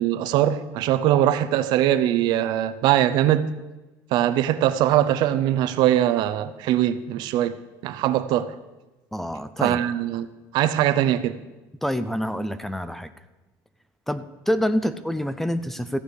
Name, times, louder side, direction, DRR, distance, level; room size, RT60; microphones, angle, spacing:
voice 1, 0.0-3.5 4.1-7.6 7.8-8.6 9.6-10.3 10.5-11.4, right 12 dB, 65° right, 0.7 m, -21 dB
voice 2, 9.1-9.8 11.8-13.1 14.1-16.0, equal, 5° left, 0.5 m, -27 dB
14.5 x 4.9 x 8.4 m
cardioid pair, 125°, 8 cm